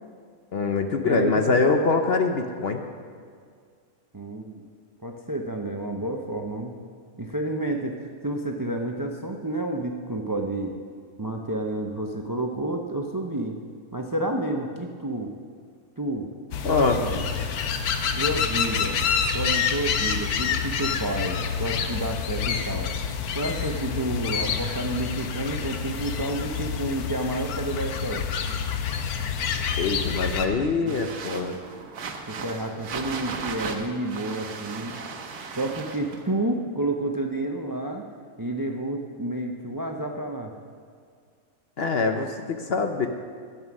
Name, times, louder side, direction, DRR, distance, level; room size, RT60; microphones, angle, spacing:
voice 1, 0.5-2.8 16.6-17.0 29.8-31.6 41.8-43.1, left 4 dB, 55° left, 5 dB, 0.8 m, -24 dB
voice 2, 1.0-1.5 4.1-4.6 5.0-6.7 7.2-8.0 8.2-10.7 11.2-13.6 13.9-15.3 16.0-16.3 16.6-17.2 18.1-19.0 19.3-22.9 23.3-28.2 30.8-31.0 32.1-35.0 35.6-38.0 38.4-40.5, right 1 dB, 30° right, 3 dB, 0.3 m, -30 dB
sound 1, 16.5-30.5, left 6 dB, 80° left, 1.3 m, -28 dB
sound 2, 30.9-36.2, right 5 dB, 80° right, 1.5 m, -36 dB
13.0 x 8.3 x 6.1 m, 2.1 s
omnidirectional pair, 1.6 m